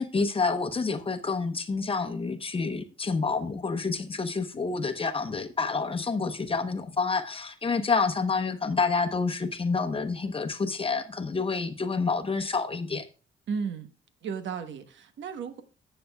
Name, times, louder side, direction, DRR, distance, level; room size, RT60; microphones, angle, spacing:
voice 1, 0.0-13.0, left 4 dB, 25° left, 1.0 m, -28 dB
voice 2, 13.5-13.9 14.2-15.6, right 6 dB, 70° right, 1.2 m, -34 dB
15.5 x 6.9 x 2.3 m
cardioid pair, 90°, 20 cm